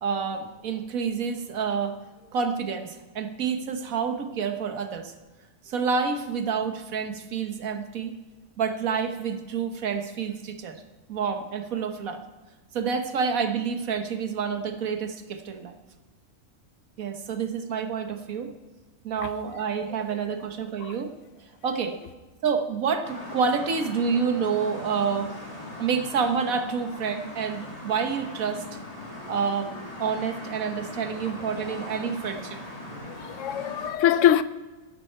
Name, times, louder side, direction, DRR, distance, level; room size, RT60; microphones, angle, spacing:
voice 1, 0.0-2.0 2.3-5.1 5.6-8.1 8.6-10.8 11.1-12.2 12.7-15.7 17.0-18.5 19.0-21.1 21.6-22.0 22.4-25.3 25.8-28.6 29.3-32.6, right 6 dB, 90° right, 1.5 m, -28 dB
sound 1, 23.0-33.9, left 1 dB, 25° left, 2.4 m, -40 dB
voice 2, 33.1-34.4, left 10 dB, 70° left, 0.9 m, -23 dB
12.0 x 11.0 x 4.4 m
omnidirectional pair, 1.4 m